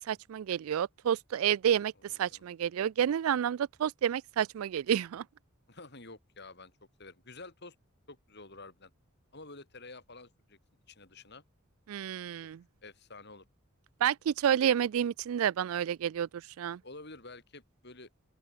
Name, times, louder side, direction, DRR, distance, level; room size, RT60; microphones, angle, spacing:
voice 1, 0.0-1.9 2.2-5.2 11.9-12.6 14.0-16.3 16.6-16.8, right 9 dB, 85° right, 0.3 m, -29 dB
voice 2, 2.0-2.4 5.7-7.8 8.1-8.9 9.3-10.6 10.9-11.4 12.4-12.5 12.8-13.5 16.8-18.1, left 3 dB, 55° left, 7.2 m, -50 dB
open air
head